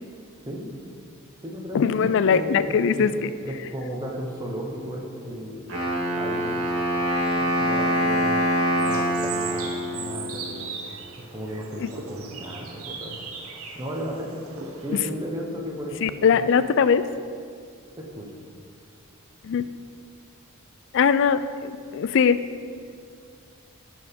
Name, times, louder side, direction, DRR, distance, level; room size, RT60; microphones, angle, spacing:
voice 1, 0.4-0.8 1.4-3.1 3.4-5.7 6.1-6.6 7.4-10.7 11.2-13.2 13.7-14.4 14.8-16.5 18.0-18.4, equal, 20° right, -1 dB, 0.9 m, -34 dB
voice 2, 1.7-3.3 11.8-11.9 16.0-17.0 19.4-19.6 20.9-22.4, left 6 dB, 60° left, 14 dB, 0.3 m, -21 dB
Wind instrument woodwind instrument, 5.7-10.7, equal, 60° right, 2.1 m, -25 dB
sound 1, 5.7-15.0, right 5 dB, 75° right, 0.9 m, -40 dB
10.5 x 4.7 x 5.2 m, 2.2 s
head